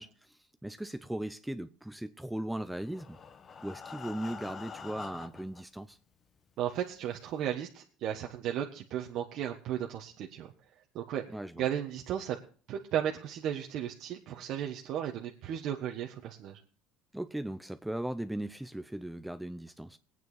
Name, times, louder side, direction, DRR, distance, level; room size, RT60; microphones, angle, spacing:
voice 1, 0.0-3.2 3.6-6.0 11.3-11.6 17.1-20.0, right 1 dB, 5° right, 0.6 m, -38 dB
Breathing, 2.7-5.6 6.4-6.5 6.9-7.0 7.4-7.5, left 6 dB, 35° left, 1.1 m, -46 dB
voice 2, 6.6-10.5 10.9-11.2 11.6-12.4 12.7-16.6, right 10 dB, 60° right, 1.4 m, -35 dB
20.5 x 9.3 x 4.1 m
cardioid pair, 115°, 0 cm